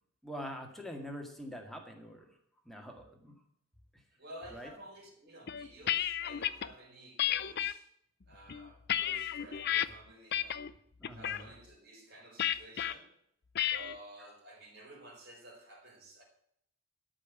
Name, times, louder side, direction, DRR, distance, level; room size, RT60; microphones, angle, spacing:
voice 1, 0.2-2.3 2.7-3.4 4.5-4.7 11.0-11.5, equal, ahead, 2 dB, 2.0 m, -44 dB
voice 2, 4.1-7.9 8.3-10.6 11.1-13.1 13.7-16.2, right 1 dB, 50° right, 0 dB, 4.6 m, -52 dB
sound 1, 5.5-6.7 7.2-7.7 8.3-9.9 10.3-10.7 11.0-11.4 12.4-12.9 13.6-13.9, left 11 dB, 50° left, 0.6 m, -32 dB
13.0 x 5.6 x 9.1 m, 0.70 s
head